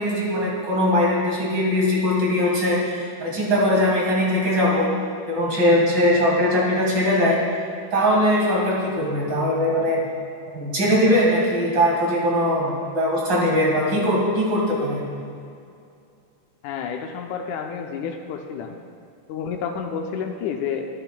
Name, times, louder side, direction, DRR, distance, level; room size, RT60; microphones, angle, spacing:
voice 1, 0.0-4.9 5.3-7.4 7.9-10.0 10.5-15.0, left 1 dB, 40° right, -4 dB, 1.8 m, -20 dB
voice 2, 16.6-18.8 19.3-20.9, left 6 dB, 80° left, 4 dB, 1.8 m, -30 dB
11.5 x 10.0 x 2.2 m, 2.5 s
omnidirectional pair, 3.8 m